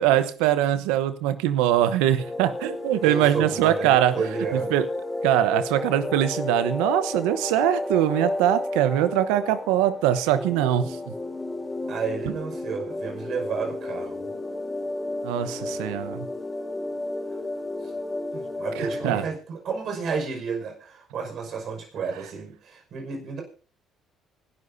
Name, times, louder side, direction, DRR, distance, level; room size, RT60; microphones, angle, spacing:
voice 1, 0.0-4.1 4.5-4.8 5.2-11.1 15.2-16.3 18.8-19.2, right 12 dB, 85° right, 13 dB, 1.0 m, -22 dB
sound 1, 2.2-19.3, left 2 dB, 15° left, 3.3 m, -32 dB
voice 2, 3.0-4.7 11.9-14.3 15.5-15.6 17.8-17.9 18.3-23.4, right 5 dB, 60° right, 4 dB, 5.5 m, -31 dB
25.0 x 12.5 x 2.7 m, 0.39 s
supercardioid pair, 65°, 0 cm